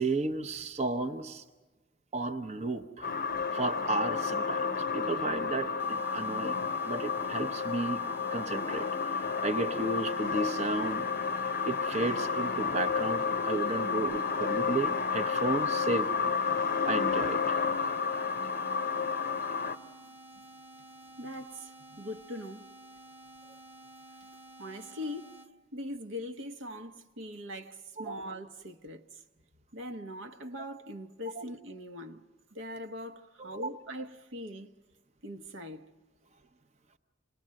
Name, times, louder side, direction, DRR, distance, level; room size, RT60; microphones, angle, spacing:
voice 1, 0.0-1.4 2.1-3.2 3.5-8.0 8.3-11.1 11.6-16.3 16.8-17.6 28.0-28.3 31.4-31.5 33.4-33.6, right 2 dB, 35° right, 0.8 m, -33 dB
sound 1, 3.0-19.8, left 5 dB, 45° left, 0.7 m, -31 dB
sound 2, 5.8-25.5, right 2 dB, 10° right, 1.2 m, -52 dB
voice 2, 21.2-22.7 24.6-25.3 25.7-29.2 29.7-32.2 32.5-34.7 35.2-35.9, left 1 dB, 65° right, 1.0 m, -41 dB
27.5 x 20.5 x 7.6 m
head